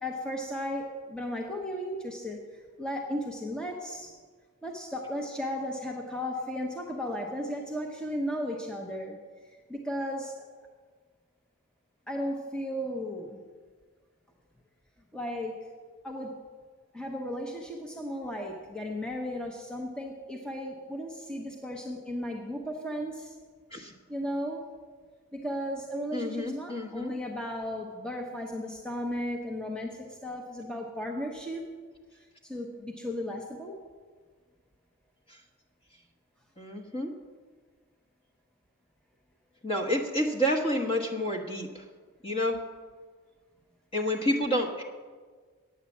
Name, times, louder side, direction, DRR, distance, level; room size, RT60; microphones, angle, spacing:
voice 1, 0.0-4.1 4.6-9.2 9.4-10.5 12.1-13.4 15.1-15.7 16.0-16.4 16.9-23.4 24.1-24.7 25.3-31.7 32.1-33.8, equal, 5° left, 1 dB, 0.7 m, -35 dB
voice 2, 26.1-27.1 35.3-35.4 36.6-37.1 39.6-41.8 42.2-42.6 43.9-44.8, equal, 25° left, 1 dB, 1.2 m, -29 dB
9.3 x 8.1 x 7.3 m, 1.5 s
head